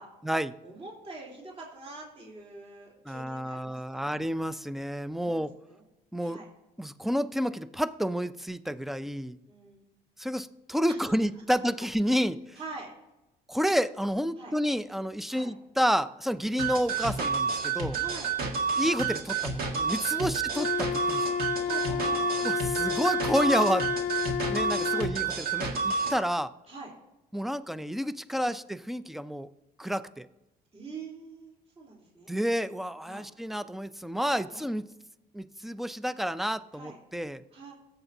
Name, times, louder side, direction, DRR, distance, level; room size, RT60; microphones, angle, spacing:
voice 1, 0.6-4.1 5.2-5.8 6.2-6.5 9.5-9.9 10.9-11.0 12.6-12.9 14.4-14.5 15.3-15.6 17.9-18.3 20.1-20.3 21.6-22.6 24.8-25.1 26.7-26.9 28.4-28.5 30.7-32.4 33.1-33.3 34.5-34.6 36.7-37.0 37.5-37.7, right 3 dB, 35° right, -3 dB, 3.4 m, -45 dB
voice 2, 3.1-5.5 6.1-6.4 6.8-9.4 10.2-12.6 13.5-18.0 18.8-21.2 22.4-23.9 24.5-26.5 27.3-29.5 29.8-30.3 32.3-34.9 35.3-37.4, equal, ahead, 14 dB, 0.4 m, -30 dB
sound 1, 16.6-26.2, right 5 dB, 65° right, 1.8 m, -30 dB
Wind instrument woodwind instrument, 20.5-25.2, left 9 dB, 55° left, 0.5 m, -31 dB
17.0 x 7.9 x 2.7 m, 0.96 s
cardioid pair, 110°, 17 cm